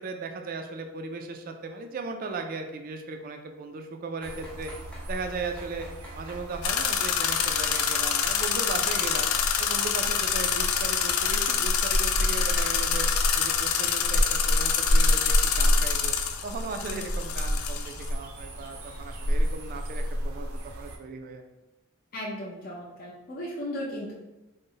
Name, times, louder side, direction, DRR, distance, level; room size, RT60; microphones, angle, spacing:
voice 1, 0.0-4.7 5.1-5.9 6.2-9.3 9.6-13.1 13.3-16.1 16.4-21.4, right 4 dB, 45° right, 5 dB, 0.3 m, -37 dB
sound 1, 4.1-5.1 5.6-11.4 11.8-12.1 12.6-12.7, equal, 5° left, 0.6 m, -47 dB
sound 2, 4.2-21.0, equal, 90° right, 0.6 m, -30 dB
sound 3, 6.6-18.1, left 8 dB, 85° left, 0.4 m, -27 dB
voice 2, 22.1-24.1, equal, 45° left, -4 dB, 0.6 m, -36 dB
3.7 x 2.0 x 3.7 m, 1.0 s
head